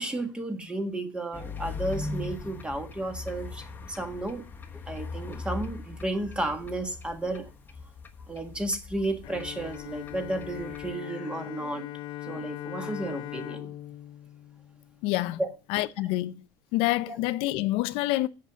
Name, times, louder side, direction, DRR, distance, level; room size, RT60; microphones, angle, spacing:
voice 1, 0.0-4.5 4.9-7.5 8.3-11.9 12.2-13.7 15.4-15.5 17.1-17.2, right 2 dB, 10° right, 1.6 m, -33 dB
sound 1, 1.3-10.9, left 3 dB, 20° left, 1.2 m, -40 dB
Bowed string instrument, 9.2-15.4, left 14 dB, 50° left, 1.0 m, -40 dB
voice 2, 15.0-15.4 15.7-16.4 16.7-18.3, left 18 dB, 70° left, 0.5 m, -27 dB
8.0 x 6.6 x 7.3 m
cardioid pair, 145°, 10 cm